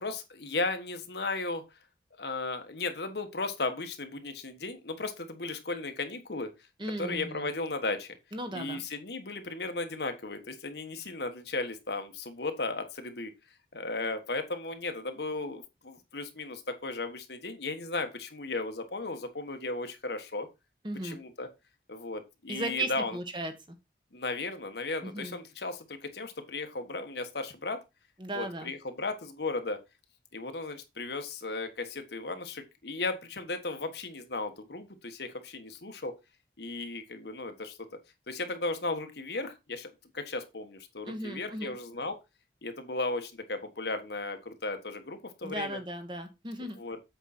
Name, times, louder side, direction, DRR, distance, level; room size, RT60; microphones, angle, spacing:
voice 1, 0.0-1.6 2.2-6.5 7.0-8.1 8.5-13.3 13.7-20.5 21.0-21.5 21.9-23.2 24.1-27.8 28.3-29.8 30.3-36.1 36.6-37.9 38.3-42.2 42.6-45.8 46.8-47.0, left 3 dB, 70° left, 1.4 m, -35 dB
voice 2, 6.8-7.5 8.3-8.8 20.8-21.2 22.5-23.5 25.0-25.4 28.2-28.7 41.1-41.7 45.4-46.8, right 1 dB, 25° right, 1.3 m, -36 dB
8.1 x 5.5 x 4.3 m
head